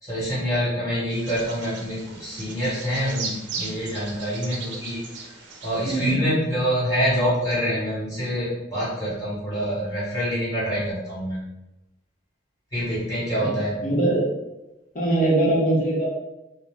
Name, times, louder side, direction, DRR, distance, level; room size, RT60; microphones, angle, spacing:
voice 1, 0.0-5.0 5.6-11.4 12.7-13.7, equal, 20° left, -10 dB, 1.3 m, -26 dB
Bird vocalization bird call bird song, 1.1-6.1, right 4 dB, 80° right, 0.5 m, -37 dB
voice 2, 5.8-6.3 13.4-13.6 13.8-14.2 14.9-16.1, right 2 dB, 45° left, -4 dB, 0.8 m, -21 dB
2.5 x 2.1 x 3.2 m, 0.94 s
head